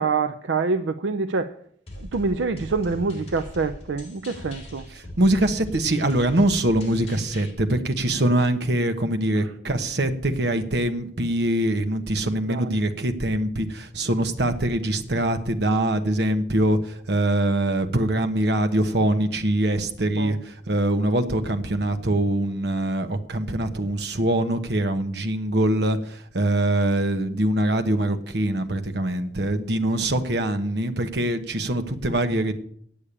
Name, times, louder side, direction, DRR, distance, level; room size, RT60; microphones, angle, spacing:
voice 1, 0.0-1.5 2.0-4.9 9.4-9.5 12.5-12.7 20.1-20.4, right 4 dB, 80° right, 0.5 m, -26 dB
sound 1, 1.9-7.5, left 1 dB, 35° left, 3.0 m, -40 dB
voice 2, 5.2-32.5, right 1 dB, 65° right, 1.1 m, -23 dB
8.5 x 8.4 x 8.7 m
head